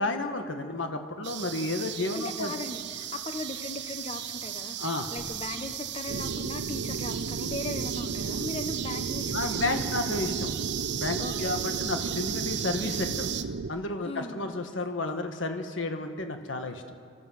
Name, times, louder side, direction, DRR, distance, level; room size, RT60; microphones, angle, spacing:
voice 1, 0.0-2.5 4.8-5.1 9.3-10.5 11.0-13.3 13.7-16.8, left 2 dB, 75° left, 6 dB, 1.5 m, -31 dB
sound 1, 1.2-13.4, right 11 dB, 60° right, 0.9 m, -35 dB
voice 2, 2.1-10.0 11.2-11.6 14.0-14.5, left 2 dB, 30° left, 8 dB, 1.1 m, -38 dB
sound 2, 5.2-7.6, equal, 15° left, 1.9 m, -52 dB
sound 3, 6.1-13.7, right 4 dB, 80° right, 0.5 m, -34 dB
24.5 x 14.0 x 7.7 m, 2.4 s
head